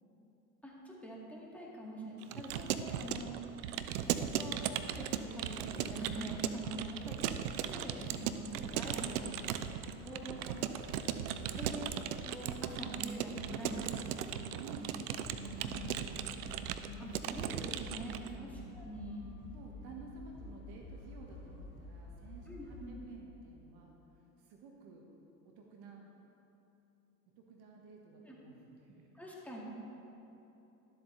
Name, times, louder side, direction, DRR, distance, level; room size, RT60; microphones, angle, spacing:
voice 1, 0.6-3.3 4.1-4.6 5.0-7.3 7.7-9.4 10.0-10.4 10.8-10.9 11.6-11.9 12.2-14.8 15.3-16.3 16.8-18.5 18.8-19.3 22.5-23.0 28.3-28.4 29.1-29.6, right 1 dB, 5° left, -4 dB, 2.0 m, -45 dB
Keyboard (musical) / Computer keyboard, 2.2-18.3, right 10 dB, 80° right, 0.6 m, -38 dB
sound 1, 4.3-22.9, left 2 dB, 25° left, 1.8 m, -53 dB
voice 2, 9.9-10.8 11.4-11.6 14.6-14.9 18.3-18.7 19.5-25.1 25.4-26.1 27.4-29.1, right 4 dB, 55° right, 0 dB, 1.4 m, -53 dB
12.0 x 7.8 x 3.2 m, 2.9 s
hypercardioid pair, 75°, 45 cm